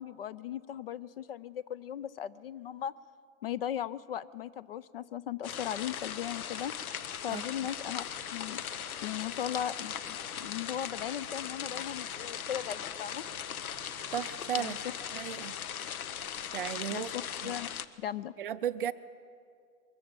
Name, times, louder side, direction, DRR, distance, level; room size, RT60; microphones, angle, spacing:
voice 1, 0.0-2.9 3.4-6.7 7.2-8.0 8.3-8.6 9.0-13.2 14.6-14.7 16.9-17.7 18.0-18.3, left 10 dB, 45° left, 19 dB, 0.4 m, -37 dB
sound 1, 5.4-17.9, left 9 dB, 85° left, 1.1 m, -39 dB
sound 2, 8.1-15.5, right 9 dB, 20° right, 0.8 m, -60 dB
voice 2, 14.1-14.8 15.1-15.5 16.5-17.1 17.4-17.5 18.4-18.9, right 9 dB, 40° right, 13 dB, 0.4 m, -34 dB
22.0 x 14.0 x 8.7 m, 2.3 s
hypercardioid pair, 160°, 42 cm